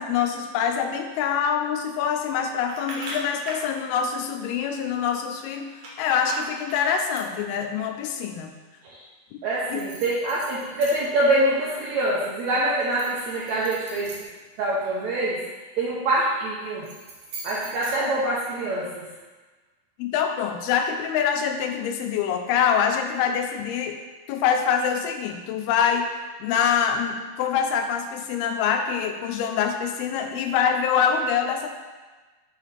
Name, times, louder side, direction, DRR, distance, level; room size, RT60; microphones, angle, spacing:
voice 1, 0.0-5.7 6.0-8.5 9.3-9.4 9.7-9.8 20.0-24.0 24.3-26.1 26.4-31.7, left 7 dB, 85° left, 5 dB, 2.6 m, -25 dB
sound 1, 2.7-3.7 5.8-7.4 9.6-11.3 11.6-12.1 12.8-15.1 16.7-18.7, right 2 dB, 65° right, 2.0 m, -41 dB
voice 2, 9.4-14.1 14.6-15.4 15.8-16.9 17.4-19.1, right 1 dB, 80° right, -6 dB, 1.6 m, -25 dB
6.4 x 3.3 x 5.6 m, 1.3 s
omnidirectional pair, 4.4 m